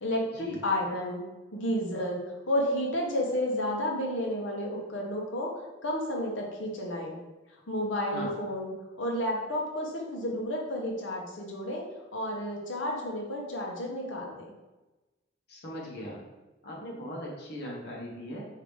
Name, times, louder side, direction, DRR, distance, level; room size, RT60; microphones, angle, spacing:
voice 1, 0.0-1.2 1.5-5.5 5.8-7.2 7.7-11.8 12.1-14.5, left 1 dB, 85° left, 0 dB, 0.9 m, -31 dB
voice 2, 15.5-16.2 16.6-18.5, left 1 dB, 55° left, -3 dB, 1.1 m, -39 dB
4.9 x 2.8 x 3.5 m, 1.1 s
head